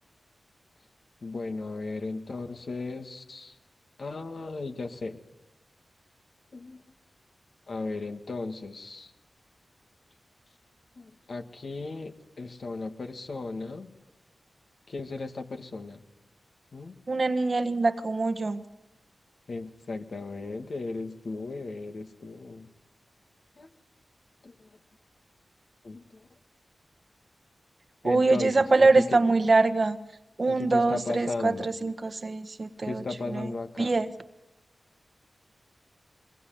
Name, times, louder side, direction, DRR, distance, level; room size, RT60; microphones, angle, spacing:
voice 1, 1.2-3.5 4.0-5.2 6.5-6.8 7.7-9.1 11.0-13.9 14.9-16.0 16.7-16.9 19.5-22.7 23.6-23.7 24.4-24.5 25.8-26.0 28.0-29.2 30.5-31.7 32.8-33.9, left 3 dB, 65° left, 4 dB, 2.2 m, -36 dB
voice 2, 17.1-18.6 28.0-30.0 30.4-33.5 33.8-34.1, right 3 dB, 50° right, 9 dB, 1.4 m, -24 dB
22.0 x 19.5 x 9.6 m, 1.0 s
cardioid pair, 50°, 0 cm